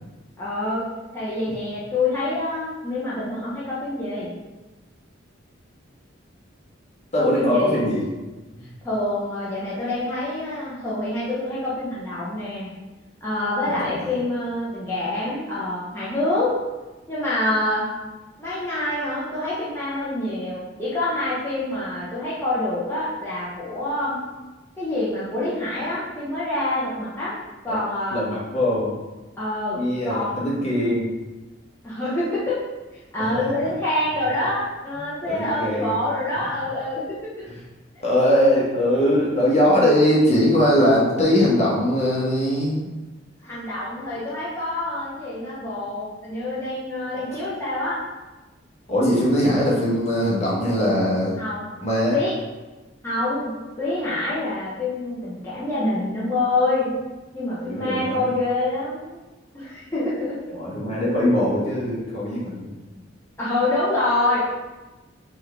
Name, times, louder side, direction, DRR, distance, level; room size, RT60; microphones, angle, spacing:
voice 1, 0.4-0.9 1.1-4.3 7.2-7.8 8.8-12.7 13.2-16.6 17.1-17.9 18.4-24.2 24.8-27.4 27.6-28.2 29.4-30.4 31.8-32.6 33.1-37.5 43.4-48.0 51.4-51.7 52.1-52.3 53.0-56.9 57.3-59.2 59.5-60.4 63.4-64.4, left 2 dB, 15° left, -10 dB, 0.8 m, -26 dB
voice 2, 7.1-8.0 8.6-8.7 13.7-14.1 27.7-27.8 28.1-29.0 29.8-31.1 33.2-33.4 35.2-36.0 37.5-37.6 38.0-42.9 47.1-47.4 48.9-51.3 51.8-52.2 57.6-58.3 60.5-62.8, equal, 35° left, -5 dB, 1.1 m, -21 dB
4.3 x 3.4 x 3.4 m, 1.2 s
head